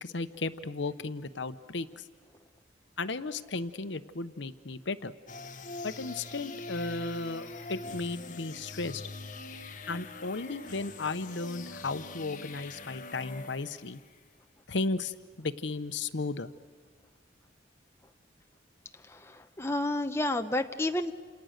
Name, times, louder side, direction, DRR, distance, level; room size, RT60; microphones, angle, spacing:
voice 1, 0.0-1.9 3.0-5.1 5.8-9.0 9.9-14.0 14.7-16.5, left 3 dB, 70° left, 11 dB, 0.9 m, -35 dB
sound 1, 5.3-14.1, left 3 dB, 45° left, 1.3 m, -43 dB
voice 2, 19.1-21.1, left 1 dB, 15° left, 6 dB, 0.8 m, -30 dB
28.5 x 27.5 x 6.6 m, 1.5 s
head